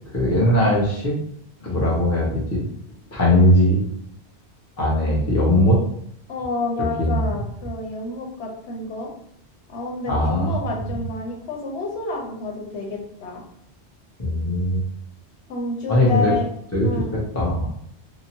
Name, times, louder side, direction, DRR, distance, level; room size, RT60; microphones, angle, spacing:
voice 1, 0.1-1.1 1.6-2.7 3.1-3.8 4.8-5.8 7.0-7.3 10.1-10.8 14.2-14.8 15.9-16.3 16.7-17.7, left 1 dB, 20° left, -4 dB, 0.6 m, -19 dB
voice 2, 6.3-9.1 9.7-13.4 15.5-16.5 16.8-17.1, left 3 dB, 85° left, -1 dB, 1.0 m, -29 dB
2.9 x 2.0 x 2.8 m, 0.70 s
omnidirectional pair, 1.1 m